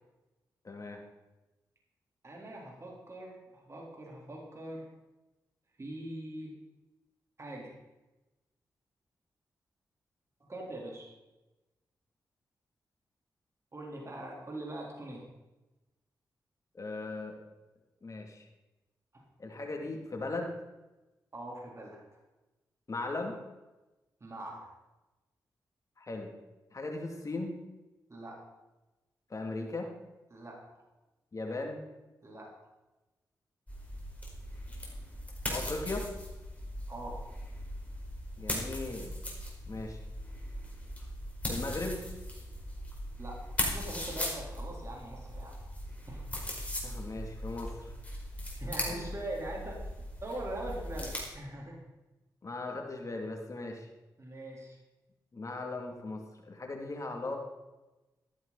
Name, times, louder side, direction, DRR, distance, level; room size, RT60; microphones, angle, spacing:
voice 1, 0.6-1.0 16.7-17.4 18.0-18.5 19.4-20.5 22.9-23.4 26.0-26.3 26.7-27.5 29.3-29.9 31.3-31.8 35.5-36.0 38.4-39.2 39.7-40.0 41.5-42.0 46.8-47.9 48.9-49.2 52.4-53.9 55.3-57.4, left 2 dB, 45° left, 2 dB, 2.8 m, -38 dB
voice 2, 2.2-4.9 5.8-6.6 7.4-7.8 10.4-11.1 13.7-15.2 19.1-19.2 21.3-22.0 24.2-24.7 28.1-28.4 30.3-30.6 32.2-32.5 36.9-37.2 43.2-45.6 46.1-46.2 48.6-49.9 50.2-51.8 54.2-54.8, right 1 dB, 40° right, -2 dB, 3.9 m, -42 dB
sound 1, 33.7-51.2, left 1 dB, 20° left, 4.9 m, -39 dB
13.5 x 12.0 x 4.2 m, 1.1 s
cardioid pair, 50°, 8 cm